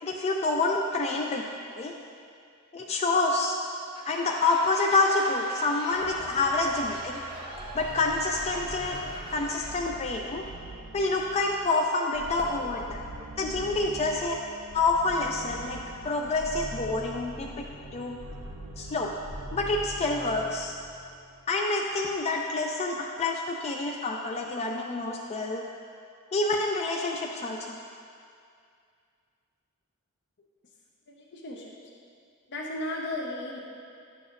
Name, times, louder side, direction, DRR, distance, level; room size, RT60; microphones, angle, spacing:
voice 1, 0.0-1.4 1.8-1.9 2.7-3.6 4.1-7.2 7.7-9.0 9.3-10.4 10.9-13.0 13.4-14.4 14.7-15.8 16.0-17.7 17.9-18.2 18.8-19.1 19.5-20.7 21.5-25.7 26.3-27.8, left 3 dB, 30° left, 0 dB, 0.4 m, -27 dB
Laughter / Crowd, 3.8-10.0, right 1 dB, 25° right, 0.8 m, -42 dB
sound 1, 5.9-21.6, right 1 dB, 80° right, 0.7 m, -43 dB
voice 2, 31.1-31.7 32.5-33.6, left 1 dB, 55° left, -2 dB, 0.7 m, -35 dB
10.5 x 6.9 x 2.5 m, 2.4 s
head